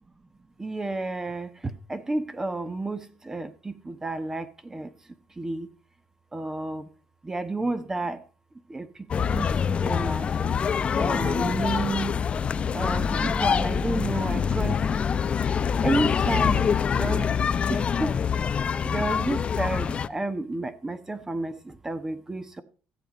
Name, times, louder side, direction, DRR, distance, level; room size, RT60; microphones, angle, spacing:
voice 1, 0.6-4.9 5.4-5.7 6.3-6.8 7.2-8.2 8.7-8.9 9.2-10.5 11.0-12.2 12.7-14.8 15.8-18.1 18.8-22.6, right 2 dB, 15° right, 1.2 m, -31 dB
sound 1, 9.1-20.1, left 7 dB, 40° left, 0.6 m, -25 dB
14.5 x 8.1 x 5.1 m
cardioid pair, 100°, 3 cm